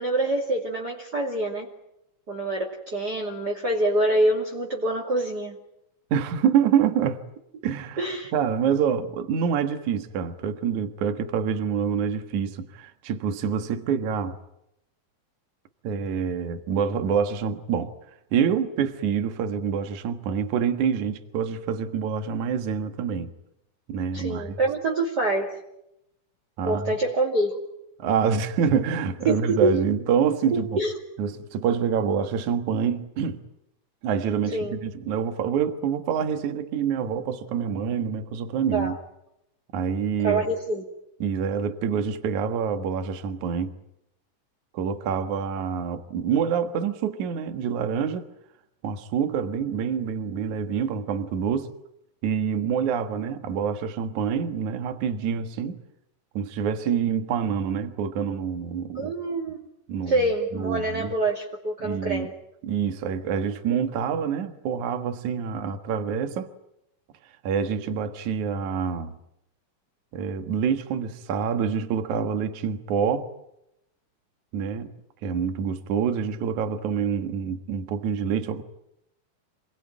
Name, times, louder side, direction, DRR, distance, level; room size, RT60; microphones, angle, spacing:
voice 1, 0.0-1.7 2.3-5.6 8.0-8.3 24.1-25.6 26.6-27.6 29.3-29.4 29.6-29.7 30.5-30.9 34.5-34.8 38.7-39.0 40.2-40.8 58.9-59.6 60.1-62.3, right 2 dB, 30° right, 2.9 m, -26 dB
voice 2, 6.1-7.2 7.6-14.4 15.8-17.9 18.3-23.3 23.9-24.6 26.6-27.0 28.0-30.8 31.2-33.4 34.0-39.0 39.7-40.5 41.2-43.8 44.7-48.2 48.8-51.7 52.2-55.8 56.3-59.1 59.9-60.2 60.5-61.1 61.8-62.3 62.6-66.5 67.4-69.1 70.1-73.3 74.5-74.9 75.2-78.6, right 7 dB, 65° right, 2.9 m, -26 dB
28.5 x 20.5 x 9.1 m
omnidirectional pair, 3.7 m